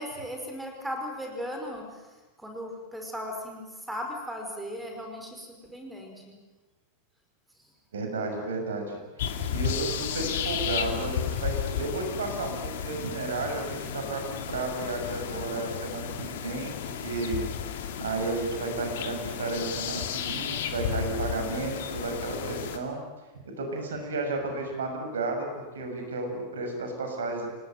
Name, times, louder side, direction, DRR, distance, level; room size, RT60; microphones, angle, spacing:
voice 1, 0.0-6.4, equal, 5° right, 2 dB, 5.2 m, -37 dB
voice 2, 7.9-17.4 18.0-23.0 23.4-27.5, right 3 dB, 65° right, 3 dB, 6.6 m, -33 dB
sound 1, 9.2-22.8, left 8 dB, 55° left, 2.7 m, -33 dB
28.5 x 19.0 x 9.2 m, 1.2 s
figure-of-eight pair, 90°, 0 cm